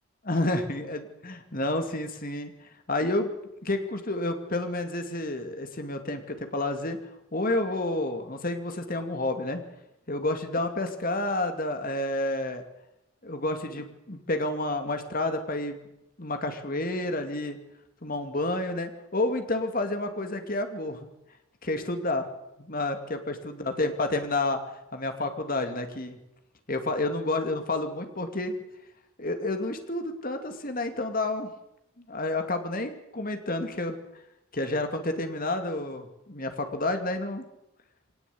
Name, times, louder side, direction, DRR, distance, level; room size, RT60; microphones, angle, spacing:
voice 1, 0.2-2.5 2.9-3.3 3.6-7.0 7.3-9.6 10.1-12.6 13.2-15.9 16.2-17.6 18.0-21.1 21.6-22.3 22.6-24.6 24.9-26.2 26.7-28.6 29.2-31.5 32.1-34.0 34.5-37.5, left 2 dB, 40° left, 6 dB, 2.5 m, -30 dB
23.0 x 18.5 x 8.6 m, 0.86 s
head